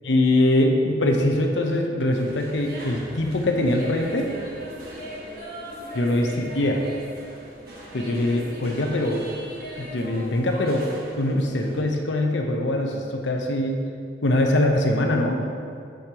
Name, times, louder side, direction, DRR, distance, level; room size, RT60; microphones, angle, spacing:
voice 1, 0.0-4.3 5.9-6.8 7.9-9.2 9.8-13.8 14.2-15.4, left 1 dB, 90° left, 2 dB, 0.8 m, -23 dB
sound 1, 2.1-11.8, equal, 55° right, 1.3 m, -39 dB
12.5 x 5.2 x 2.9 m, 2.3 s
head